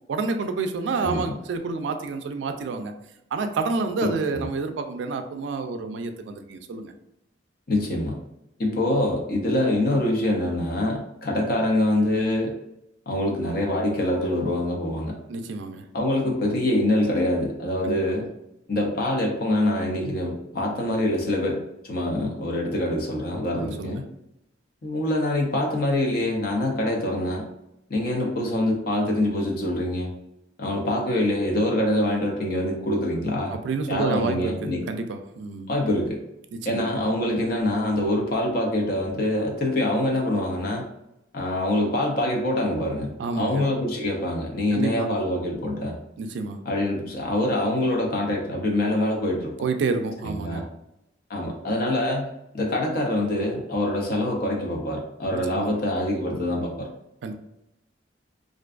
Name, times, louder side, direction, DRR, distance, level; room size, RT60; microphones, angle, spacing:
voice 1, 0.1-2.9 3.3-6.9 15.3-15.8 17.8-18.0 23.5-24.0 33.5-35.7 36.7-36.9 43.2-43.7 44.7-45.1 46.2-46.6 49.6-50.7 55.5-55.7 57.2-57.3, right 4 dB, 70° right, 7 dB, 0.3 m, -29 dB
voice 2, 1.0-1.4 4.0-4.5 7.7-8.2 8.6-12.5 13.1-15.1 15.9-18.3 18.7-24.0 24.8-27.4 27.9-30.1 30.6-33.5 33.9-34.8 35.7-36.2 36.7-40.8 41.3-45.9 46.7-49.5 50.2-50.6 51.3-52.3 52.5-56.9, left 1 dB, 50° left, -1 dB, 0.6 m, -25 dB
2.5 x 2.2 x 2.4 m, 0.85 s
head